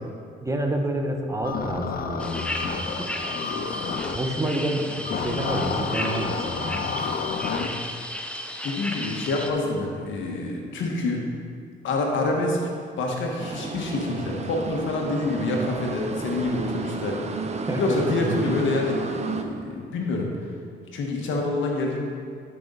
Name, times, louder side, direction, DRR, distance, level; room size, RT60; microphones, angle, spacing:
voice 1, 0.4-3.1 3.8-6.8 17.7-18.4, right 1 dB, 15° right, 2 dB, 1.2 m, -29 dB
sound 1, 1.4-4.2 5.0-7.7, left 5 dB, 45° left, 0.6 m, -30 dB
sound 2, 2.2-9.5, left 1 dB, 5° left, 0.8 m, -34 dB
voice 2, 3.3-3.7 7.4-7.7 8.6-11.2 11.8-12.6 13.0-17.2 17.8-20.3 20.9-22.1, left 2 dB, 75° left, 0 dB, 1.7 m, -27 dB
sound 3, 13.4-19.4, right 4 dB, 35° right, 0.7 m, -32 dB
11.5 x 5.8 x 4.1 m, 2.2 s
cardioid pair, 90°, 20 cm